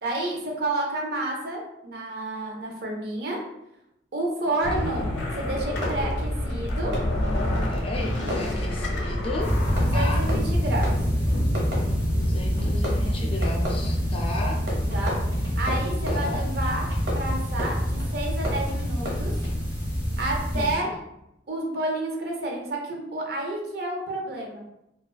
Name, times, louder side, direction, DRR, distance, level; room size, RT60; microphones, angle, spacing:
voice 1, 0.0-3.4 4.1-5.1 5.4-6.9 9.8-10.9 14.9-15.2 15.6-16.9 17.1-19.4 20.2-20.9 21.5-24.6, right 2 dB, 60° right, 0 dB, 0.5 m, -30 dB
sound 1, 4.6-13.0, left 1 dB, 85° left, 0.5 m, -29 dB
Fireworks, 5.7-19.9, equal, 85° right, 0.9 m, -37 dB
voice 2, 7.7-9.5 9.9-10.3 12.1-14.6 16.1-16.5 20.5-20.9, left 2 dB, 30° left, -1 dB, 0.4 m, -34 dB
sound 2, 9.4-20.8, equal, 10° right, 0.6 m, -26 dB
2.4 x 2.2 x 2.3 m, 0.83 s
head